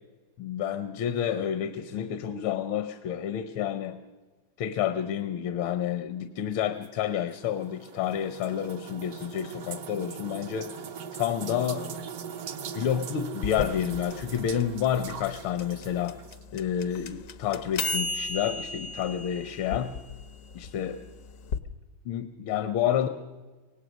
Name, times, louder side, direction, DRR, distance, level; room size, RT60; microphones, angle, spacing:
voice 1, 0.4-4.0 4.6-10.7 11.1-11.9 12.7-16.2 16.5-19.9 20.6-21.0 22.1-23.1, left 9 dB, 80° left, 10 dB, 1.6 m, -29 dB
sound 1, 6.8-16.4, right 7 dB, 55° right, 1.2 m, -41 dB
sound 2, 13.4-21.6, left 3 dB, 60° left, 0.9 m, -35 dB
24.5 x 18.0 x 6.2 m, 1.3 s
omnidirectional pair, 2.2 m